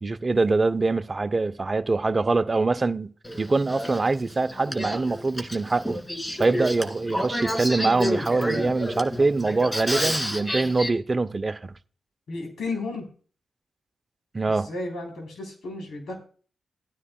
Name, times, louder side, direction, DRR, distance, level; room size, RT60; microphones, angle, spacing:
voice 1, 0.0-3.1 3.4-6.0 6.4-11.7 14.3-14.7, right 3 dB, 35° right, 0.7 m, -24 dB
Male speech man speaking / Female speech woman speaking / Conversation, 3.2-10.9, equal, 20° left, 2.2 m, -30 dB
voice 2, 12.3-13.1 14.5-16.1, left 3 dB, 70° left, 3.6 m, -33 dB
15.0 x 9.8 x 2.3 m
supercardioid pair, 45°, 0 cm